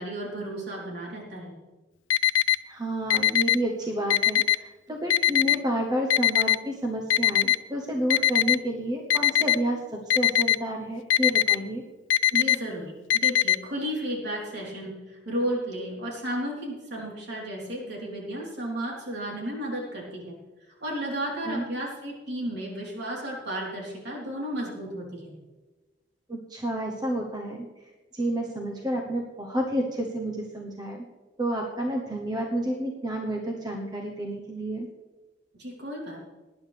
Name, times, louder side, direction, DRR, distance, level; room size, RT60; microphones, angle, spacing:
voice 1, 0.0-1.5 12.3-20.3 20.8-25.3 35.6-36.2, right 1 dB, 60° right, -3 dB, 3.9 m, -33 dB
Alarm, 2.1-2.6 3.1-3.6 4.1-4.6 5.1-5.6 6.1-6.6 7.1-7.6 8.1-8.6 9.1-9.6 10.1-10.6 11.1-11.6 12.1-12.6 13.1-13.6, left 12 dB, 85° left, 0.4 m, -20 dB
voice 2, 2.7-11.8 21.4-21.6 26.3-27.7 28.1-31.0 31.4-34.9, right 1 dB, 20° right, 0 dB, 1.0 m, -30 dB
19.0 x 10.0 x 3.5 m, 1.2 s
head